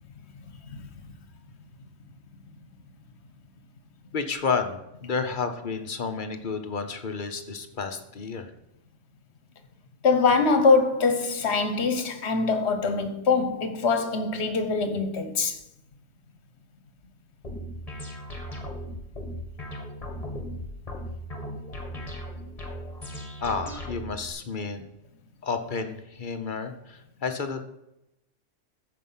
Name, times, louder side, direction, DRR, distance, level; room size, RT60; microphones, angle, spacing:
voice 1, 4.1-8.5 23.4-24.8 25.4-27.6, left 5 dB, 45° left, 1.0 m, -31 dB
voice 2, 10.0-15.6, left 4 dB, 65° left, 1.3 m, -23 dB
sound 1, 17.4-24.3, equal, 30° left, 1.8 m, -37 dB
14.0 x 5.2 x 5.6 m
omnidirectional pair, 1.3 m